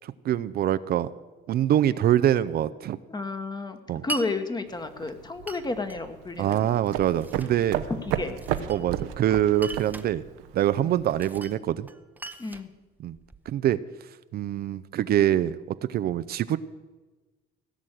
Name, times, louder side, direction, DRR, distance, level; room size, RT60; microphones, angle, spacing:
voice 1, 0.0-1.1 1.5-3.0 3.9-4.0 6.4-7.9 8.7-10.2 10.5-11.9 13.0-13.2 13.5-13.8 14.3-15.6 15.9-16.6, right 11 dB, 55° right, 14 dB, 0.5 m, -24 dB
voice 2, 3.1-6.7 7.9-8.7 10.8-11.0 12.4-12.7, left 3 dB, 20° left, 8 dB, 1.4 m, -32 dB
Glass, 4.1-4.3 5.5-6.0 6.9-7.6 8.4-9.1 9.5-10.1 11.2-11.6 11.9-13.5, right 1 dB, 10° right, 0.8 m, -39 dB
sound 1, 4.7-11.5, right 11 dB, 90° right, 1.0 m, -35 dB
16.5 x 6.3 x 9.1 m, 1.2 s
cardioid pair, 100°, 20 cm